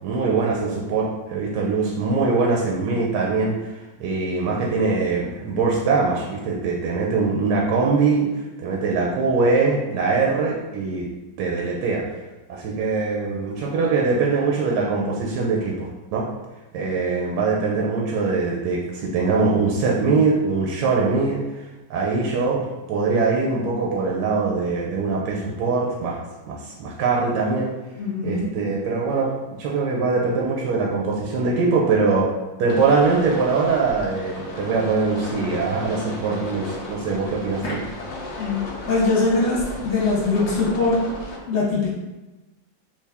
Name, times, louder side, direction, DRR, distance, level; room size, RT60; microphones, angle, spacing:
voice 1, 0.0-3.7 4.0-11.1 11.4-12.0 12.5-16.3 16.7-21.6 21.9-27.7 28.2-29.3 29.6-32.3 32.6-37.8, right 4 dB, 75° right, -2 dB, 1.1 m, -22 dB
voice 2, 28.0-28.5 37.6-37.7 38.4-41.1 41.5-41.9, left 3 dB, 50° left, -5 dB, 1.0 m, -22 dB
sound 1, 32.7-41.4, left 2 dB, 80° left, 0.6 m, -35 dB
3.4 x 2.5 x 3.4 m, 1.1 s
omnidirectional pair, 1.9 m